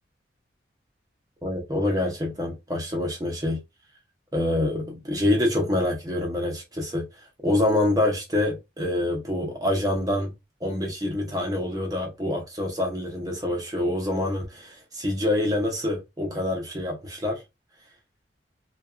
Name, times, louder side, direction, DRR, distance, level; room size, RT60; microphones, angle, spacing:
voice 1, 1.4-3.6 4.3-7.1 7.4-10.3 10.6-17.4, left 1 dB, 20° right, 0.6 m, -26 dB
2.7 x 2.3 x 2.3 m
head